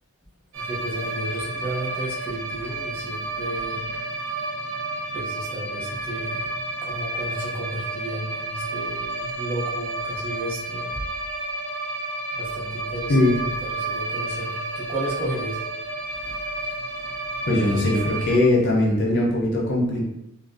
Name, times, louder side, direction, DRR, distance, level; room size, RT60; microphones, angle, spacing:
voice 1, 0.5-3.8 5.1-6.5 6.8-11.0 12.3-15.7 16.1-17.2 17.6-18.0, right 1 dB, 10° right, -8 dB, 0.7 m, -33 dB
sound 1, 0.5-18.4, right 2 dB, 70° right, 0.5 m, -31 dB
voice 2, 17.5-20.0, left 1 dB, 50° left, -3 dB, 0.5 m, -20 dB
2.4 x 2.3 x 2.4 m, 0.85 s
head